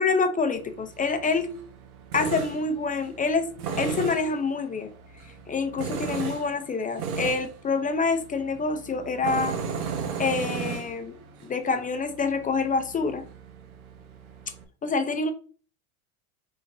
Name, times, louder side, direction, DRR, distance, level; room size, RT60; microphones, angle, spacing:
voice 1, 0.0-1.5 2.1-3.5 3.8-4.9 5.2-9.6 10.2-11.1 11.4-13.2 14.8-15.3, left 4 dB, 20° left, 0.5 m, -26 dB
Tools, 0.5-14.6, right 6 dB, 85° right, 1.0 m, -36 dB
5.0 x 3.9 x 2.6 m
hypercardioid pair, 100°, 42 cm